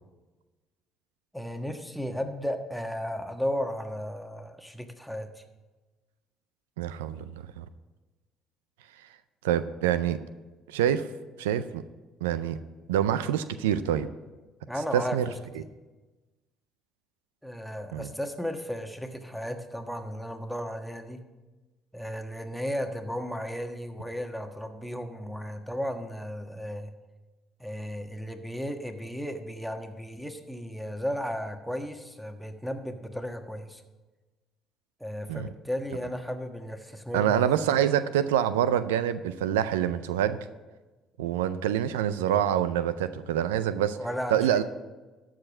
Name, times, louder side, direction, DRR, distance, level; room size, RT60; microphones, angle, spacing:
voice 1, 1.3-5.4 14.7-15.2 15.6-15.7 17.4-21.2 21.9-26.9 27.6-33.8 35.0-37.5 44.0-44.6, equal, ahead, 5 dB, 1.4 m, -34 dB
voice 2, 6.8-7.7 9.4-10.2 10.7-11.1 11.4-11.8 12.2-12.6 12.9-14.1 14.9-15.3 15.5-15.6 17.9-18.1 35.3-35.5 37.1-40.4 41.2-44.0 44.3-44.6, right 10 dB, 90° right, 13 dB, 0.4 m, -26 dB
13.0 x 5.0 x 7.3 m, 1.2 s
hypercardioid pair, 60°, 0 cm